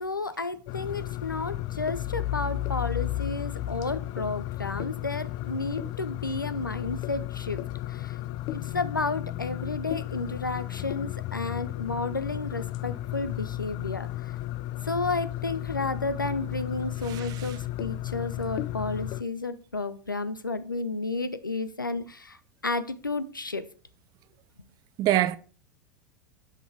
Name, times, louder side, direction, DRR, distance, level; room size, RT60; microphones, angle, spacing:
voice 1, 0.0-8.1 8.5-14.1 14.8-22.4 22.6-23.6, left 3 dB, 90° left, 0.5 m, -32 dB
sound 1, 0.7-19.2, left 15 dB, 40° left, 0.4 m, -34 dB
voice 2, 17.0-17.6 25.0-25.4, right 14 dB, 40° right, 0.5 m, -26 dB
6.1 x 5.4 x 4.6 m
figure-of-eight pair, 85°, 11 cm